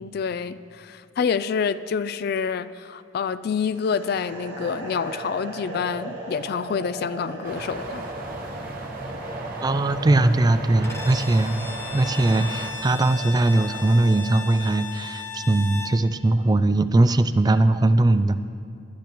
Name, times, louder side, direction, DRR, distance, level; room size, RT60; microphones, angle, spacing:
voice 1, 0.0-8.1, left 6 dB, 55° left, 14 dB, 0.3 m, -27 dB
sound 1, 3.8-14.9, right 2 dB, 70° right, 1.9 m, -37 dB
sound 2, 7.4-12.7, right 2 dB, 50° right, 1.3 m, -37 dB
voice 2, 9.6-18.5, right 2 dB, 20° right, 12 dB, 0.3 m, -20 dB
Bowed string instrument, 10.8-16.0, left 5 dB, 15° left, 0.7 m, -36 dB
20.5 x 12.0 x 3.0 m, 2.5 s
head